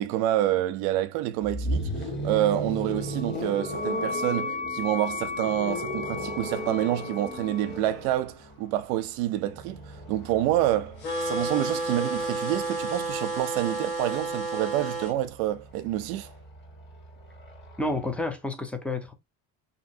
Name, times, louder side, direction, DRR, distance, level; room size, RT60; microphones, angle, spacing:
voice 1, 0.0-1.9 2.2-11.0 11.2-16.3, right 13 dB, 85° right, 0.6 m, -27 dB
sound 1, 1.4-13.4 14.6-18.2, equal, 25° left, 1.4 m, -36 dB
Wind instrument woodwind instrument, 3.0-7.8, left 4 dB, 40° left, 1.5 m, -35 dB
sound 2, 11.0-15.1, right 2 dB, 60° left, 1.7 m, -31 dB
voice 2, 17.8-19.1, left 2 dB, 5° left, 0.5 m, -30 dB
2.9 x 2.6 x 2.7 m
supercardioid pair, 100°, 43 cm